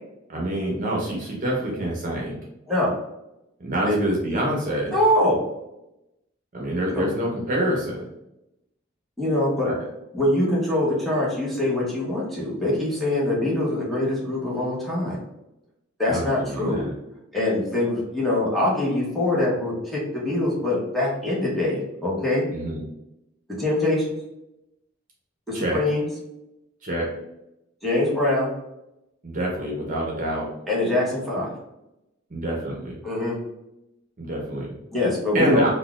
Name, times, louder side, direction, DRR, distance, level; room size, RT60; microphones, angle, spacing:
voice 1, 0.3-2.4 3.6-4.9 6.5-8.1 9.6-9.8 16.1-16.9 22.5-22.8 25.5-25.8 26.8-27.1 29.2-30.5 32.3-33.0 34.2-34.7 35.3-35.7, right 1 dB, 45° right, -2 dB, 0.8 m, -26 dB
voice 2, 4.9-5.4 6.9-7.1 9.2-9.7 10.1-15.2 16.0-16.8 17.3-22.4 23.6-24.2 25.5-26.1 27.8-28.5 30.7-31.5 33.0-33.4 34.9-35.7, left 1 dB, ahead, -6 dB, 1.0 m, -23 dB
3.9 x 2.2 x 2.4 m, 0.88 s
head